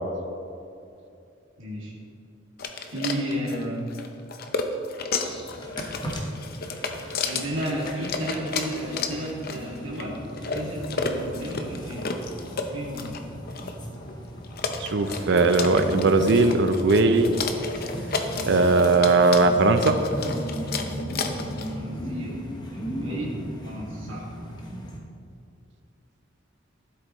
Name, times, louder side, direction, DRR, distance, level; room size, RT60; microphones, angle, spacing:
voice 1, 1.6-1.9 2.9-3.8 7.2-10.2 10.5-12.0 12.7-13.1 21.7-22.4 22.7-23.3 23.6-24.2, equal, 80° right, -5 dB, 2.2 m, -32 dB
sound 1, 2.6-21.8, left 4 dB, 50° left, 0.7 m, -32 dB
sound 2, 5.1-25.0, equal, 20° left, 1.2 m, -37 dB
voice 2, 14.8-17.3 18.5-20.0, right 3 dB, 60° right, 8 dB, 0.6 m, -19 dB
13.5 x 8.1 x 3.1 m, 2.5 s
head